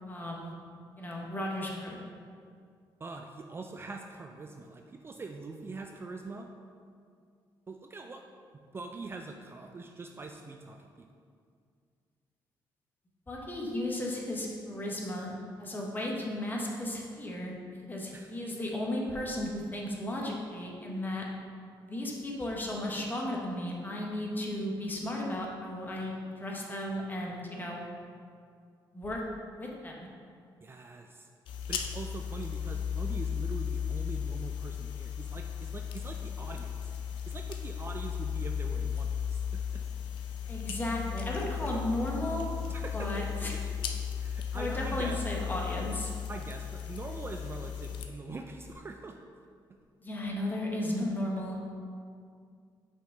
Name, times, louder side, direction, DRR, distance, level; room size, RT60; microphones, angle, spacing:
voice 1, 0.1-0.5 1.0-2.0 13.3-17.5 17.9-21.2 21.9-26.1 26.4-27.9 28.9-29.2 29.6-30.0 40.5-42.5 42.9-43.6 44.5-46.1 50.0-51.6, left 1 dB, 25° left, -2 dB, 1.1 m, -35 dB
voice 2, 3.0-6.5 7.7-8.2 8.5-11.1 18.1-18.3 30.6-31.3 31.7-36.9 37.3-39.8 42.7-43.3 44.2-45.2 46.3-49.2, right 3 dB, 30° right, 3 dB, 0.4 m, -43 dB
sound 1, 31.5-48.1, left 8 dB, 85° left, 0.5 m, -35 dB
5.4 x 5.2 x 3.8 m, 2.2 s
cardioid pair, 95°, 8 cm